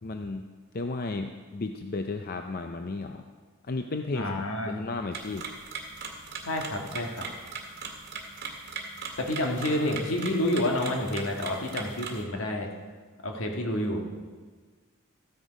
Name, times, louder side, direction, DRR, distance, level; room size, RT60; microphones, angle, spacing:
voice 1, 0.0-0.5 0.7-3.2 3.6-4.3 4.7-5.5 9.7-9.9, left 3 dB, 45° left, 6 dB, 0.5 m, -34 dB
voice 2, 4.1-4.8 6.4-7.3 9.2-12.7 13.2-14.0, left 1 dB, 70° left, 2 dB, 1.7 m, -29 dB
sound 1, 5.1-12.2, right 4 dB, 50° right, 1.8 m, -40 dB
14.0 x 9.9 x 5.2 m, 1.5 s
head